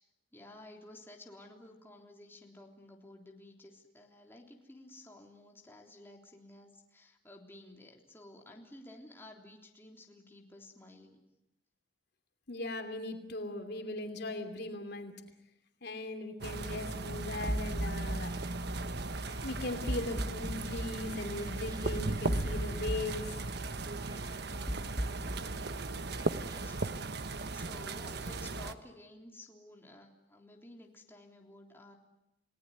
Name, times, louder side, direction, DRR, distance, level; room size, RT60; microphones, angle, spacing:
voice 1, 0.3-11.2 25.0-25.7 26.4-32.0, left 1 dB, 15° left, 1 dB, 3.5 m, -54 dB
voice 2, 12.5-15.1 15.8-18.3 19.4-23.4, left 2 dB, 65° left, 6 dB, 2.9 m, -39 dB
sound 1, 16.4-28.7, right 2 dB, 65° right, 1.2 m, -37 dB
sound 2, 17.5-27.0, equal, 20° right, 1.9 m, -39 dB
30.0 x 18.5 x 9.5 m, 0.89 s
head